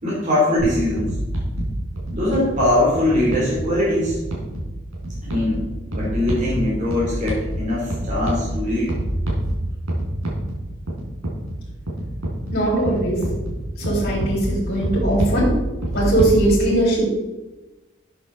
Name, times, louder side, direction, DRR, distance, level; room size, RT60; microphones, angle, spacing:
voice 1, 0.0-1.2 2.1-4.2 5.2-9.0, left 1 dB, 35° right, -6 dB, 3.0 m, -21 dB
sound 1, 0.6-16.4, right 1 dB, 85° right, 3.9 m, -27 dB
voice 2, 12.5-13.2 13.8-15.4 15.9-17.1, right 1 dB, 50° left, -8 dB, 4.2 m, -20 dB
12.5 x 7.7 x 3.9 m, 1.1 s
head